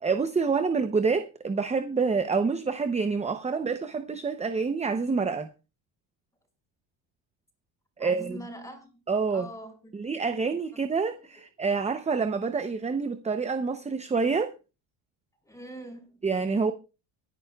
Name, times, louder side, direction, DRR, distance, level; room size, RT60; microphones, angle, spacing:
voice 1, 0.0-5.5 8.0-8.4 9.1-9.5 9.9-14.5 16.2-16.7, right 4 dB, 15° right, 0.6 m, -27 dB
voice 2, 8.0-9.0 9.3-9.9 11.3-11.4 15.4-16.2, equal, 5° left, 5.6 m, -43 dB
23.5 x 10.5 x 2.3 m
cardioid pair, 120°, 49 cm